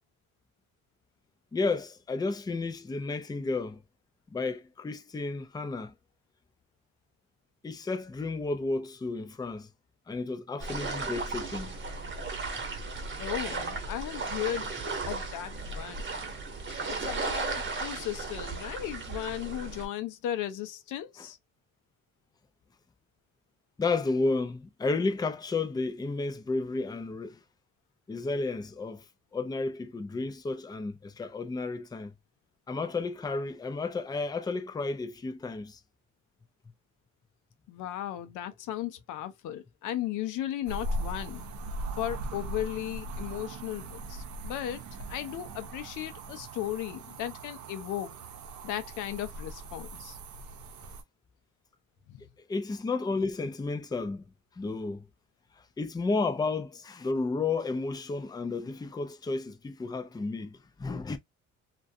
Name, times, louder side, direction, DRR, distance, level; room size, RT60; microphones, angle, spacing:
voice 1, 1.5-3.8 4.3-5.9 7.6-9.7 10.1-11.8 21.2-21.3 23.8-27.4 28.1-29.0 29.3-32.1 32.7-35.8 52.5-54.2 54.6-55.0 55.8-61.2, left 3 dB, 15° left, 0.4 m, -32 dB
sound 1, 10.6-19.9, right 3 dB, 40° right, 1.0 m, -35 dB
voice 2, 13.2-14.8 15.1-16.0 16.9-21.4 37.7-41.5 42.0-44.8 45.1-48.2 48.6-50.2 52.1-52.2, left 12 dB, 90° left, 0.6 m, -36 dB
sound 2, 40.7-51.0, right 1 dB, 75° right, 0.7 m, -39 dB
2.4 x 2.2 x 2.5 m
cardioid pair, 90°, 30 cm